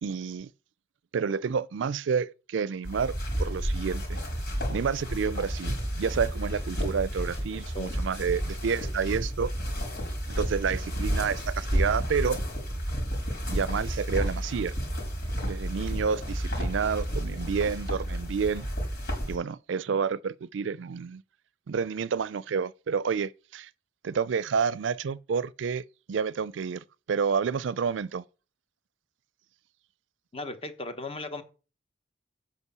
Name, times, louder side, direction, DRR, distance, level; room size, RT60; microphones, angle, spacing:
voice 1, 0.0-0.5 1.1-4.2 4.7-9.5 10.3-12.4 13.5-14.7 15.4-18.7 19.3-21.2 21.7-23.7 24.0-28.2, right 6 dB, 75° right, 0.4 m, -29 dB
sound 1, 2.8-19.4, equal, 60° left, 4.5 m, -31 dB
voice 2, 30.3-31.4, left 2 dB, 30° left, 1.2 m, -36 dB
8.2 x 5.2 x 6.8 m
head